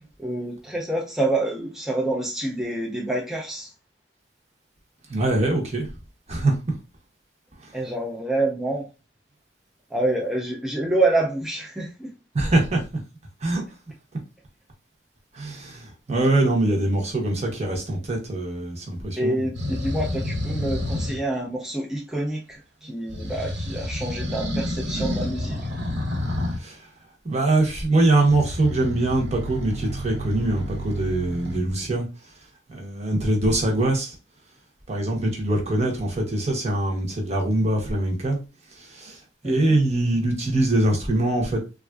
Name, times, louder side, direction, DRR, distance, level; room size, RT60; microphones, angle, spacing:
voice 1, 0.2-3.7 7.7-8.9 9.9-12.1 19.2-25.6 39.4-39.8, right 2 dB, ahead, 0.4 m, -27 dB
voice 2, 5.1-5.9 6.3-6.7 7.6-7.7 12.3-12.8 13.4-13.6 15.3-19.5 26.6-26.9 27.2-32.1 32.7-34.1 34.9-38.4 38.7-41.6, right 2 dB, 35° right, 0.9 m, -23 dB
sound 1, 19.5-21.2 23.1-26.6 28.3-31.6, left 1 dB, 65° right, 1.3 m, -29 dB
3.4 x 2.4 x 2.3 m
head